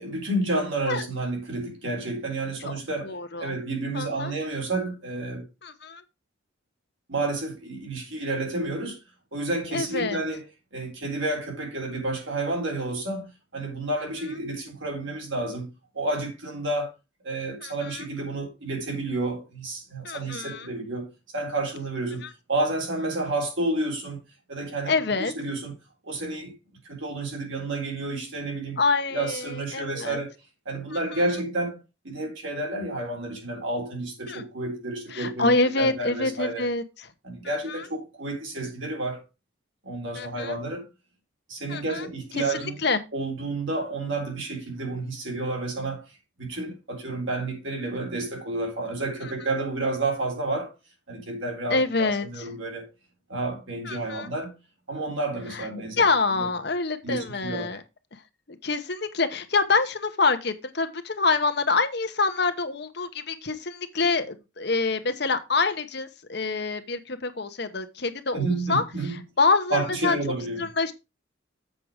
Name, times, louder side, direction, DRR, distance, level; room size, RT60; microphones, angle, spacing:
voice 1, 0.0-3.1 3.4-5.5 7.1-9.0 9.3-10.4 10.7-15.7 15.9-16.9 17.2-24.2 24.5-24.9 25.2-25.7 26.0-26.5 26.8-28.8 29.1-30.3 30.7-36.7 37.2-39.2 39.8-40.9 41.5-42.8 43.1-46.1 46.4-50.7 51.1-52.9 53.3-54.6 54.9-56.0 56.3-56.5 57.0-57.7 68.3-69.1 69.7-70.7, right 2 dB, 70° right, 3.7 m, -30 dB
voice 2, 3.0-3.5 3.9-4.3 5.6-6.0 9.7-10.2 17.6-18.0 20.0-20.7 22.2-22.3 24.9-25.3 28.8-30.2 30.9-31.2 34.3-34.4 35.1-37.1 37.4-37.9 40.1-40.6 41.7-42.1 42.3-43.0 49.2-49.3 51.7-52.4 53.8-54.3 55.5-55.7 56.0-57.8 58.5-70.2 70.6-70.9, left 3 dB, 55° left, 1.0 m, -26 dB
7.7 x 6.1 x 4.8 m
head